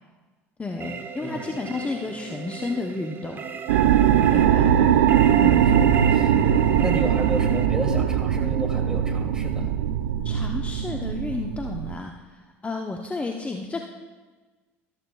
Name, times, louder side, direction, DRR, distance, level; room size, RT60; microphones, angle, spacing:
voice 1, 0.6-3.5 4.3-4.7 5.4-5.6 6.4-6.5 10.2-13.8, left 3 dB, 20° left, 2 dB, 0.9 m, -32 dB
sound 1, 0.8-7.7, right 5 dB, 30° right, 1.1 m, -35 dB
voice 2, 1.2-1.5 5.7-5.9 6.1-9.7, right 2 dB, 10° right, 1 dB, 2.7 m, -32 dB
sound 2, 3.7-11.9, right 9 dB, 75° right, 0.5 m, -20 dB
13.5 x 13.0 x 2.4 m, 1.3 s
hypercardioid pair, 65°, 7 cm